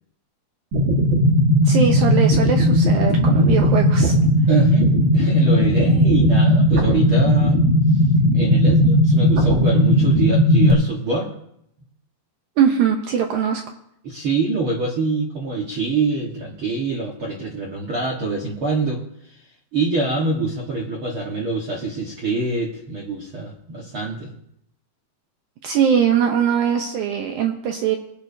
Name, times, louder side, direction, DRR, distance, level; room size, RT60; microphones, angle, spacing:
sound 1, 0.7-10.7, equal, 45° right, 1.7 m, -16 dB
voice 1, 1.6-4.1 12.6-13.6 25.6-28.0, right 8 dB, 80° right, 4 dB, 1.7 m, -21 dB
voice 2, 4.5-7.7 8.3-11.3 14.0-19.0 19.7-24.3, right 3 dB, 60° right, -3 dB, 1.3 m, -25 dB
21.0 x 10.5 x 2.7 m, 0.74 s
omnidirectional pair, 4.5 m